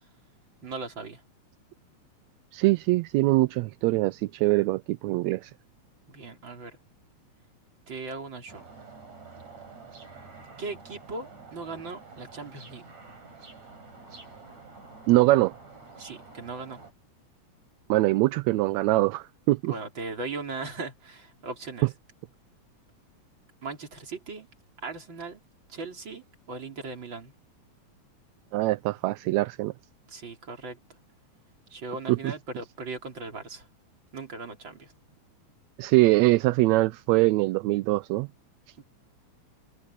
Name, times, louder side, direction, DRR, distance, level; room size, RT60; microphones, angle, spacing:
voice 1, 0.6-1.2 6.1-6.8 7.9-8.6 10.6-12.8 16.0-16.8 19.7-21.9 23.6-24.5 24.8-25.4 25.7-27.3 30.1-31.0 31.7-33.7 34.1-34.9 38.8-38.9, right 3 dB, 40° right, 4.2 m, -38 dB
voice 2, 2.5-5.5 15.1-15.5 17.9-19.7 28.5-29.7 32.2-32.3 35.8-38.3, right 19 dB, 80° right, 1.7 m, -23 dB
sound 1, 8.5-16.9, right 4 dB, 65° right, 7.8 m, -48 dB
omnidirectional pair, 3.5 m